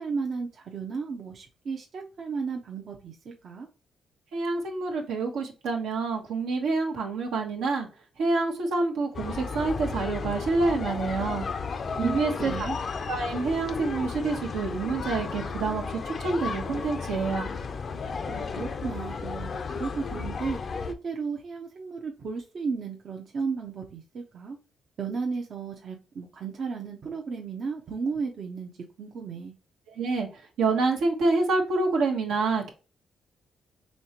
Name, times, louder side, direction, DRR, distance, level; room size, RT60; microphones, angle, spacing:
voice 1, 0.0-3.7 12.0-12.8 18.3-20.6 21.0-24.6 25.0-28.7 29.0-29.5, right 5 dB, 60° right, 0 dB, 0.8 m, -34 dB
voice 2, 4.3-7.9 8.2-11.5 12.0-12.5 13.1-15.8 16.2-17.5 30.0-30.3 30.6-32.7, right 3 dB, 85° right, 0 dB, 1.2 m, -27 dB
sound 1, 9.1-20.9, left 5 dB, 50° left, 0.5 m, -33 dB
4.3 x 3.4 x 2.9 m, 0.32 s
cardioid pair, 70°, 0 cm